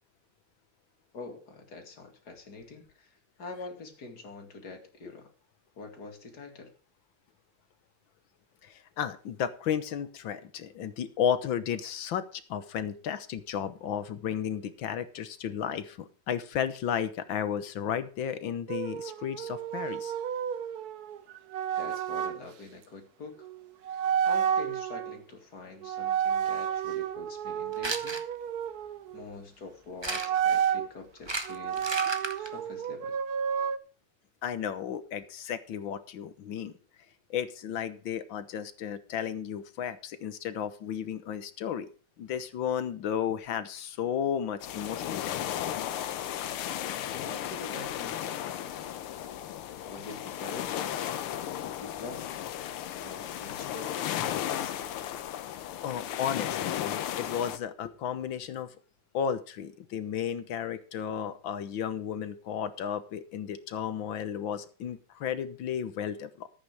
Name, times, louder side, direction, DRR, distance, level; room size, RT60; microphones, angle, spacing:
voice 1, 1.1-5.3 5.8-6.7 21.8-23.5 24.2-28.2 29.1-32.1 32.4-33.1 47.1-48.9 49.8-51.2 51.8-52.4 53.0-55.0, left 3 dB, 50° left, 4 dB, 2.8 m, -45 dB
voice 2, 8.6-20.1 34.4-36.7 37.3-41.9 42.2-45.4 55.8-58.7 59.1-66.5, left 8 dB, 70° left, 12 dB, 1.7 m, -33 dB
sound 1, 18.7-22.4 23.4-23.6 23.9-25.2 25.8-29.2 30.1-30.9 31.5-33.8, right 8 dB, 60° right, 1.1 m, -31 dB
sound 2, 27.7-28.2 30.0-30.5 31.2-32.5, right 2 dB, 20° right, 0.7 m, -33 dB
sound 3, 44.6-57.6, left 11 dB, 85° left, 1.8 m, -35 dB
14.0 x 8.6 x 4.8 m, 0.38 s
omnidirectional pair, 2.3 m